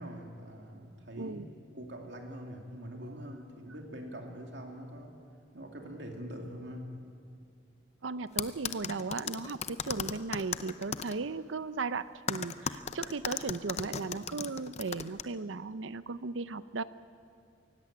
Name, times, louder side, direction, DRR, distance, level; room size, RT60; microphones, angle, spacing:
voice 1, 0.0-5.1 5.5-6.9, equal, 70° right, 2 dB, 2.6 m, -44 dB
voice 2, 1.2-1.5 8.0-16.8, right 4 dB, 90° right, 15 dB, 0.7 m, -36 dB
sound 1, 8.4-11.1 12.3-15.2, left 6 dB, 35° left, 0.6 m, -35 dB
23.5 x 17.0 x 8.7 m, 2.4 s
head